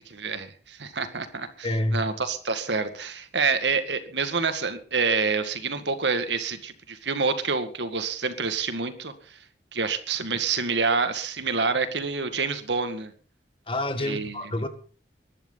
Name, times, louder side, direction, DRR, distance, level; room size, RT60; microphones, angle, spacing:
voice 1, 0.1-9.4 9.7-13.1 14.0-14.4, right 4 dB, 80° right, 2.0 m, -27 dB
voice 2, 1.6-2.1 13.7-14.7, left 1 dB, 30° left, 1.8 m, -27 dB
22.5 x 11.5 x 4.1 m
head